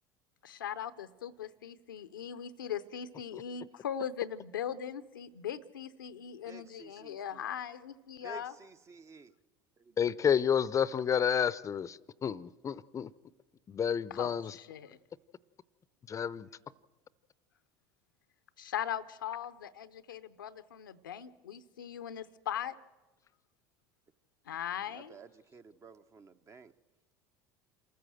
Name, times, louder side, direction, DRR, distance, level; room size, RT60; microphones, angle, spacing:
voice 1, 0.4-8.5 14.1-15.0 18.6-22.8 24.5-25.2, left 9 dB, 80° left, 12 dB, 0.7 m, -39 dB
voice 2, 6.5-7.5 8.2-9.3 9.8-10.0 24.9-26.7, right 4 dB, 30° right, 10 dB, 0.8 m, -52 dB
voice 3, 10.0-13.1 13.7-14.6 16.1-16.5, left 7 dB, 30° left, 20 dB, 0.6 m, -30 dB
27.0 x 14.0 x 7.6 m, 1.2 s
hypercardioid pair, 70°, 11 cm